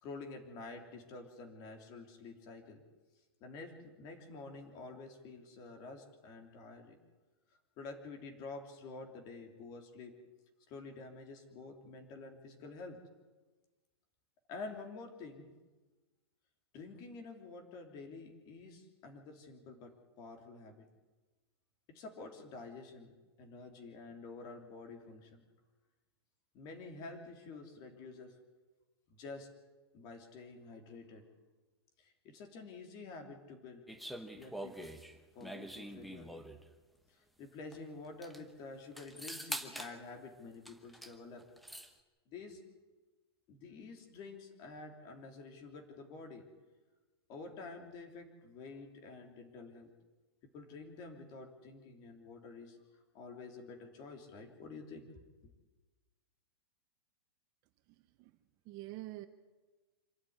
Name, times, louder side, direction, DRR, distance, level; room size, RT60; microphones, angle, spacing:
voice 1, 0.0-2.8 3.4-7.0 7.8-10.1 10.7-13.0 14.5-15.5 16.7-20.8 21.9-23.1 23.4-25.4 26.5-28.3 29.1-29.5 29.9-31.2 32.0-33.8 34.3-34.9 35.3-36.4 37.1-41.5 42.3-42.6 43.5-46.4 47.3-49.9 50.5-52.8 53.1-55.1 55.4-55.5, left 3 dB, 30° left, 5 dB, 3.3 m, -49 dB
sound 1, 33.9-36.6 37.7-37.8 38.0-38.4 39.0-39.9 40.6-41.1 41.4-41.9, right 1 dB, ahead, 1.0 m, -44 dB
voice 2, 57.9-58.4 58.6-59.3, right 17 dB, 30° right, 10 dB, 0.8 m, -47 dB
26.0 x 12.5 x 9.6 m, 1.2 s
supercardioid pair, 165°, 13 cm